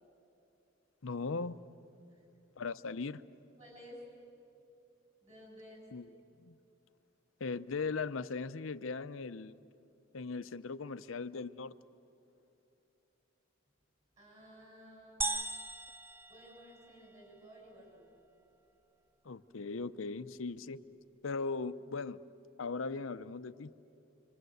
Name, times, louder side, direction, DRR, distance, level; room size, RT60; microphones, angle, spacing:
voice 1, 1.0-1.6 2.6-3.2 5.9-6.6 7.4-9.6 10.1-11.8 19.2-20.8 21.2-22.2 22.6-23.7, left 4 dB, 85° left, 14 dB, 0.7 m, -39 dB
voice 2, 3.6-4.1 5.2-5.9 14.2-15.3 16.3-18.0, equal, 35° right, -2 dB, 7.2 m, -54 dB
sound 1, 15.2-17.2, right 2 dB, 10° right, 0.5 m, -38 dB
26.0 x 25.5 x 8.0 m, 2.8 s
head